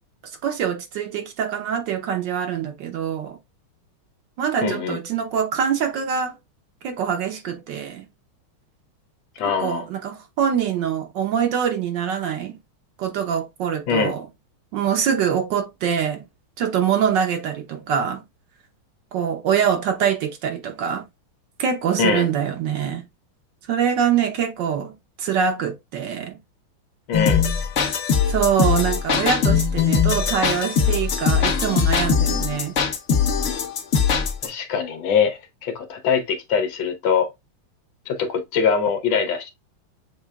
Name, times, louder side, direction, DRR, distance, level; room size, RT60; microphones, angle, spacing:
voice 1, 0.4-3.4 4.4-6.3 6.8-8.1 9.6-12.6 13.0-14.2 14.7-16.2 16.6-18.2 19.1-21.1 21.6-23.0 23.7-24.9 25.2-26.4 28.3-32.7, right 8 dB, 65° right, 1.3 m, -24 dB
voice 2, 4.6-5.0 9.4-9.8 13.9-14.1 22.0-22.3 27.1-27.5 34.4-37.3 38.1-39.5, left 6 dB, 70° left, 1.5 m, -22 dB
sound 1, 27.1-34.5, left 6 dB, 55° left, 0.8 m, -21 dB
7.0 x 3.2 x 2.3 m
omnidirectional pair, 2.3 m